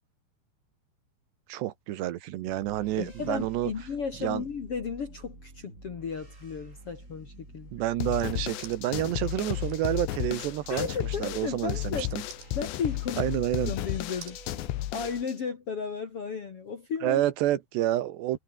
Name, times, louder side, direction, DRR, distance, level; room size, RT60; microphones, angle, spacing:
voice 1, 1.5-3.7 4.2-4.4 7.7-10.9 11.2-12.2 13.2-13.7 17.0-18.4, right 14 dB, 75° right, 3.2 m, -29 dB
sound 1, 2.4-15.2, right 2 dB, 15° right, 6.0 m, -49 dB
voice 2, 3.0-7.7 10.7-12.3 12.5-13.3 13.7-14.4 14.9-17.2, left 5 dB, 50° left, 1.9 m, -34 dB
sound 2, 8.0-15.3, left 15 dB, 75° left, 3.4 m, -33 dB
sound 3, 8.2-13.7 14.2-14.4, right 9 dB, 60° right, 4.3 m, -52 dB
omnidirectional pair, 5.3 m